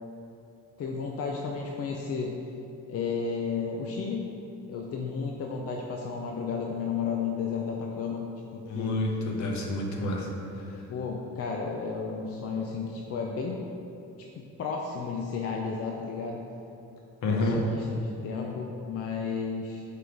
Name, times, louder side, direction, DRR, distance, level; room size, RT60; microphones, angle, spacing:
voice 1, 0.8-2.4 2.9-4.3 4.7-9.0 10.9-13.6 14.2-16.4 17.2-19.8, left 5 dB, 50° left, 0 dB, 0.6 m, -33 dB
voice 2, 8.7-10.3 17.2-17.6, left 2 dB, 70° left, 0 dB, 1.0 m, -28 dB
5.5 x 3.9 x 4.9 m, 2.8 s
cardioid pair, 90°, 30 cm